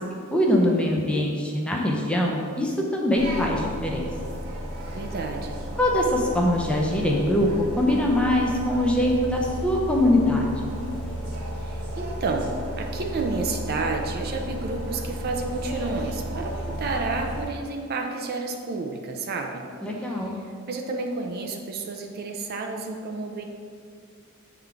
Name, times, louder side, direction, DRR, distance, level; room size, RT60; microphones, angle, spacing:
voice 1, 0.3-4.1 5.8-7.5 7.8-10.7 19.8-20.4, left 1 dB, 5° left, -2 dB, 0.6 m, -23 dB
sound 1, 3.1-17.4, equal, 85° right, 1.3 m, -33 dB
voice 2, 4.9-5.6 11.6-19.6 20.0-23.4, right 3 dB, 45° right, 3 dB, 0.5 m, -31 dB
7.9 x 3.8 x 3.4 m, 2.2 s
head